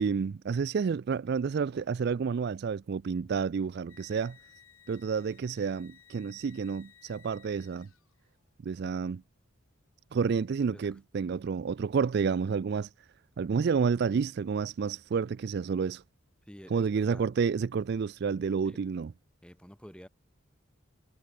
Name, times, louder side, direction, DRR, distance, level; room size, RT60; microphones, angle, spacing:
voice 1, 0.0-4.4 4.9-7.9 8.6-9.2 10.1-12.9 13.4-16.0 16.7-19.1, right 5 dB, 50° right, 0.3 m, -30 dB
sound 1, 3.9-8.4, left 9 dB, 85° left, 3.9 m, -59 dB
voice 2, 16.5-17.3 18.7-18.8 19.4-20.1, equal, 5° left, 3.7 m, -49 dB
head